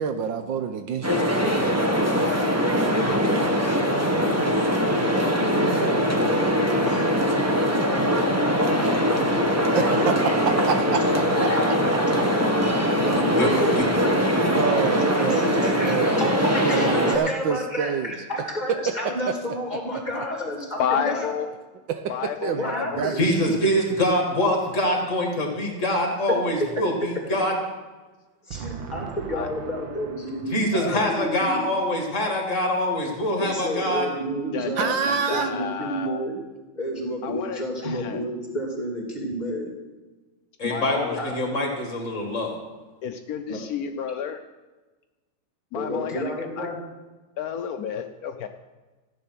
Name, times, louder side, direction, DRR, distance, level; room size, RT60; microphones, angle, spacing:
voice 1, 0.0-1.8 9.7-12.2 13.7-13.8 14.5-18.1 18.7-18.9 21.9-23.2 28.5-30.0 30.3-30.4 34.8-35.5, right 6 dB, 70° right, 8 dB, 1.4 m, -28 dB
sound 1, 1.0-17.2, equal, 10° right, 0.9 m, -22 dB
voice 2, 3.1-3.5 13.1-13.5 13.8-13.9 23.2-27.5 30.5-34.1 40.6-42.6, left 1 dB, 35° left, 1 dB, 2.3 m, -24 dB
voice 3, 5.2-5.8 6.8-7.1 7.7-8.3 8.8-9.0 11.5-11.6 13.0-14.4 14.7-14.9 15.2-21.3 22.5-23.2 26.8-26.9 28.4-31.6 33.4-36.4 36.8-39.7 40.9-41.3 43.5-43.6 45.7-46.8, equal, 20° left, -1 dB, 2.7 m, -31 dB
voice 4, 20.8-21.5 22.1-23.6 29.3-29.5 34.5-36.3 37.2-38.2 40.6-41.2 43.0-44.4 45.7-46.3 46.6-46.7 47.4-48.5, left 8 dB, 85° left, 7 dB, 0.8 m, -31 dB
14.5 x 8.5 x 5.9 m, 1.2 s
omnidirectional pair, 2.3 m